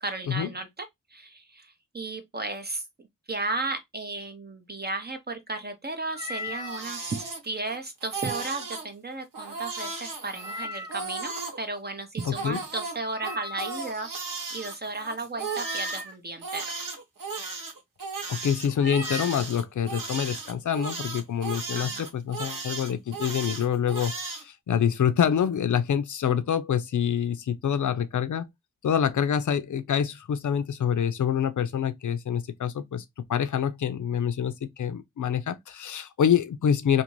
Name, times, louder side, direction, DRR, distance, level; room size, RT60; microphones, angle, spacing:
voice 1, 0.0-0.9 1.1-2.8 3.3-14.1 14.5-16.7 21.7-22.0, right 3 dB, 30° right, 0.6 m, -34 dB
Meow, 6.1-6.9 10.3-11.1 13.1-13.9 15.4-16.1 18.8-19.4, left 1 dB, 10° right, 1.0 m, -37 dB
Crying sobbing, 6.3-7.8 8.0-8.9 9.3-11.6 12.2-16.0 16.4-24.4, right 4 dB, 80° right, 1.1 m, -35 dB
voice 2, 12.3-12.6 18.3-28.5 28.8-33.0 33.3-37.0, left 8 dB, 65° left, 0.5 m, -26 dB
2.6 x 2.6 x 3.0 m
wide cardioid pair, 95°, 33 cm